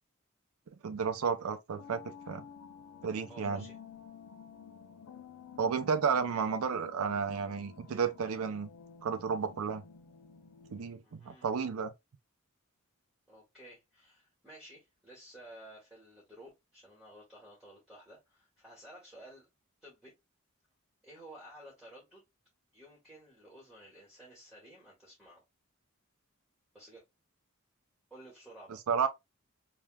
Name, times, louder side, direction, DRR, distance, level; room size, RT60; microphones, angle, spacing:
voice 1, 0.8-2.4 3.0-3.6 5.6-8.7 9.0-9.8 10.7-11.9 28.9-29.1, right 6 dB, 80° right, 0.5 m, -32 dB
sound 1, 1.8-10.9, left 6 dB, 85° left, 0.6 m, -52 dB
voice 2, 3.3-3.8 11.0-11.5 13.3-19.5 19.8-20.1 21.0-22.2 22.7-25.4 26.7-27.0 28.1-28.8, right 1 dB, ahead, 1.4 m, -53 dB
3.4 x 2.9 x 2.2 m
head